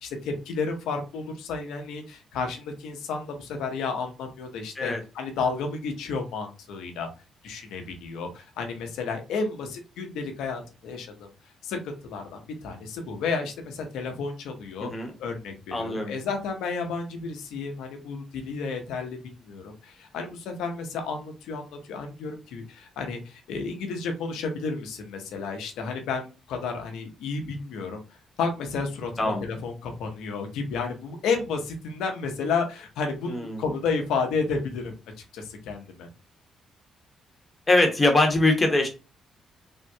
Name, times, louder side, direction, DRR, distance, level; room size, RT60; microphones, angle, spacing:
voice 1, 0.0-7.1 7.4-11.3 11.6-14.9 15.2-28.0 28.4-35.0 35.3-36.1, left 4 dB, 85° left, 4 dB, 0.8 m, -32 dB
voice 2, 14.8-15.1 15.7-16.1 29.2-29.4 33.3-33.6 37.7-38.9, left 2 dB, 25° left, 3 dB, 0.9 m, -22 dB
3.6 x 2.1 x 2.7 m, 0.31 s
cardioid pair, 90°, 0 cm